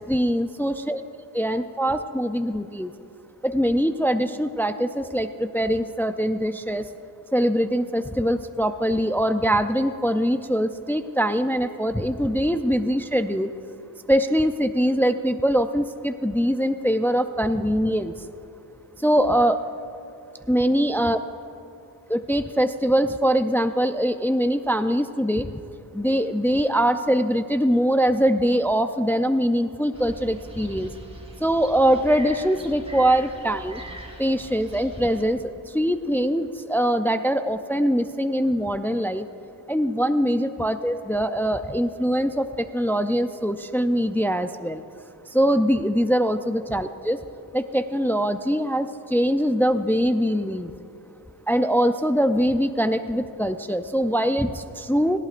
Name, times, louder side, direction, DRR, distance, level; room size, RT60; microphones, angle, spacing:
voice 1, 0.1-1.0 1.3-2.9 3.4-6.9 7.3-13.5 14.1-18.1 19.0-19.6 20.5-21.2 22.1-25.5 25.9-30.9 31.4-33.8 34.2-39.2 39.7-44.8 45.3-47.2 47.5-50.7 51.5-55.2, equal, 5° left, 9 dB, 0.5 m, -23 dB
sound 1, 29.9-35.2, right 1 dB, 15° right, 2.9 m, -41 dB
30.0 x 11.5 x 2.5 m, 2.9 s
cardioid pair, 65°, 41 cm